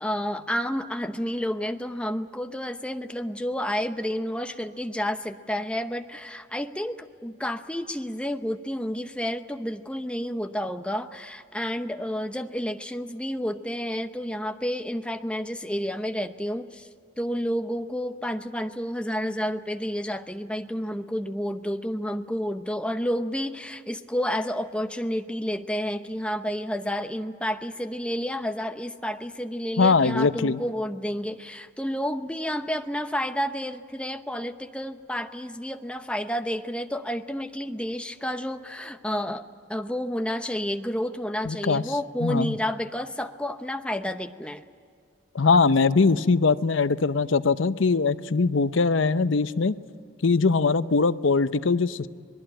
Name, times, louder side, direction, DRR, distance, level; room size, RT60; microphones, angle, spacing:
voice 1, 0.0-16.9 17.2-44.6, equal, 5° left, 7 dB, 0.8 m, -30 dB
voice 2, 29.8-30.6 41.4-41.8 42.2-42.6 45.3-49.7 50.2-52.1, left 4 dB, 75° left, 14 dB, 0.7 m, -21 dB
25.0 x 20.0 x 8.9 m, 2.3 s
head